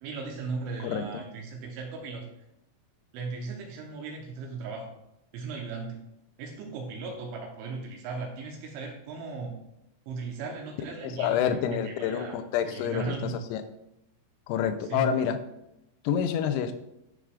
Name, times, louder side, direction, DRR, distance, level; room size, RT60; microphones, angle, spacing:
voice 1, 0.0-2.2 3.1-5.0 5.3-6.0 6.4-9.6 10.1-12.4 12.7-13.4 14.9-15.1, right 4 dB, 80° right, 1 dB, 2.9 m, -37 dB
voice 2, 0.8-1.2 11.0-13.6 14.5-15.4 16.0-16.7, left 8 dB, 85° left, 9 dB, 3.3 m, -28 dB
12.5 x 4.8 x 2.3 m, 0.86 s
omnidirectional pair, 6.0 m